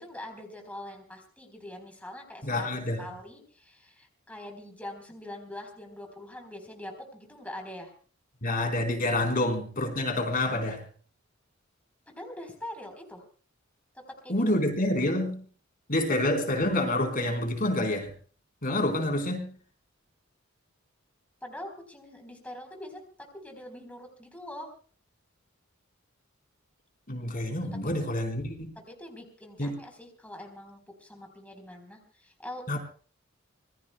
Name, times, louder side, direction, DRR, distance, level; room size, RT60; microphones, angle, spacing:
voice 1, 0.0-7.9 12.1-13.2 13.9-14.4 21.4-24.7 27.5-28.1 28.8-32.8, left 1 dB, 5° left, 4.0 m, -44 dB
voice 2, 2.4-3.0 8.4-10.8 14.3-15.4 15.9-18.1 18.6-19.5 27.1-28.7 29.6-29.8 32.7-32.8, left 1 dB, 45° left, 3.9 m, -28 dB
26.0 x 21.0 x 2.2 m
head